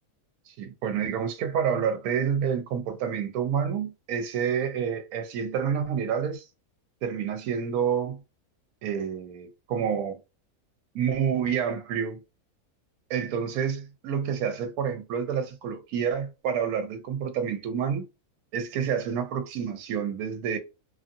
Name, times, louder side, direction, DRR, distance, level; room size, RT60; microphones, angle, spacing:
voice 1, 0.5-6.4 7.0-8.2 8.8-10.2 10.9-12.2 13.1-18.0 18.5-20.6, right 7 dB, 80° right, 1.1 m, -28 dB
2.8 x 2.5 x 2.5 m
omnidirectional pair, 1.6 m